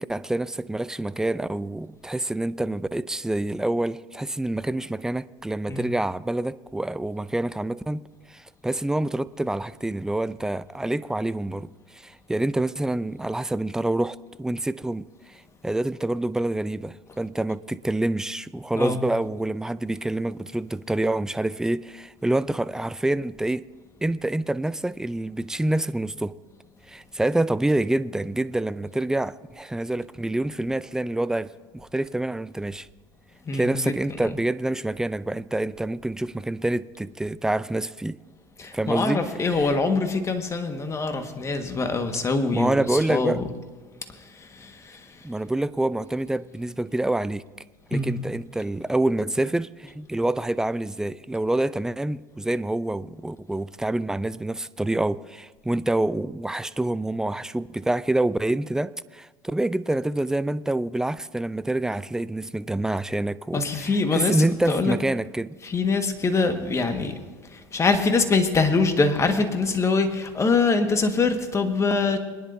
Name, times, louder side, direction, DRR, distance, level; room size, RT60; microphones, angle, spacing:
voice 1, 0.0-8.0 8.3-11.7 11.9-15.4 15.6-23.6 24.0-26.3 26.9-32.9 33.5-38.2 38.7-39.3 39.5-39.7 42.5-43.4 45.2-47.4 47.9-65.6, right 1 dB, 5° right, 0.4 m, -27 dB
voice 2, 33.5-34.0 38.6-43.4 44.4-45.0 47.9-48.1 63.5-64.4 64.7-64.9 65.6-67.2 67.5-72.2, left 4 dB, 30° left, 1.6 m, -24 dB
22.5 x 10.5 x 2.7 m
hypercardioid pair, 75°, 11 cm